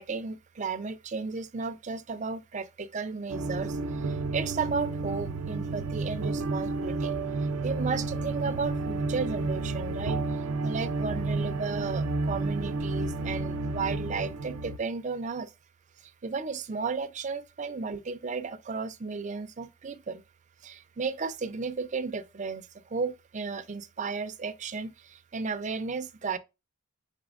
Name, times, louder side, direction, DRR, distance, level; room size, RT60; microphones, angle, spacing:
voice 1, 0.0-15.5 16.0-20.2 20.6-26.4, right 4 dB, 30° right, 0.4 m, -34 dB
sound 1, 3.3-14.8, right 3 dB, 85° right, 0.5 m, -31 dB
5.1 x 3.8 x 2.4 m
head